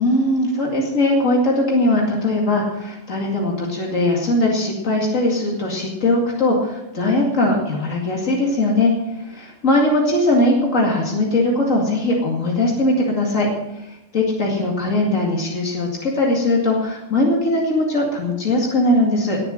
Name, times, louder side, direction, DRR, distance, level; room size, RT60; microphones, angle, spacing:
voice 1, 0.0-13.5 13.8-19.4, left 1 dB, 80° left, -1 dB, 2.7 m, -20 dB
19.0 x 6.9 x 6.5 m, 0.94 s
omnidirectional pair, 1.3 m